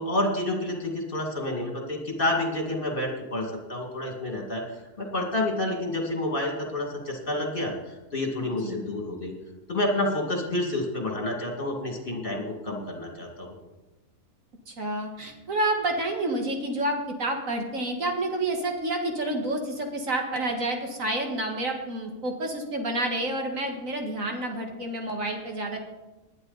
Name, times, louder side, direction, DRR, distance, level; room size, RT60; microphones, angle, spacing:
voice 1, 0.0-9.3 9.7-13.6, left 1 dB, 35° left, 1 dB, 2.5 m, -29 dB
voice 2, 14.7-25.8, right 1 dB, 65° right, 2 dB, 2.2 m, -29 dB
19.5 x 10.0 x 4.1 m, 1.1 s
omnidirectional pair, 1.6 m